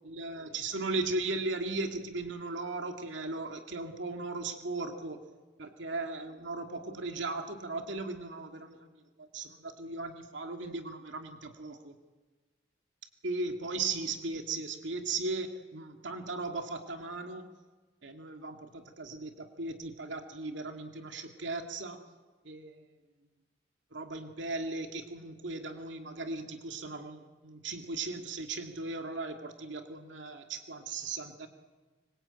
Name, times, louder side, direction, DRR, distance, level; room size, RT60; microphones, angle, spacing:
voice 1, 0.0-5.2 5.6-8.9 9.2-11.9 13.2-17.5 18.0-22.0 22.4-22.9 23.9-31.5, right 3 dB, 85° right, 4 dB, 2.4 m, -37 dB
25.0 x 23.0 x 9.0 m, 1.3 s
head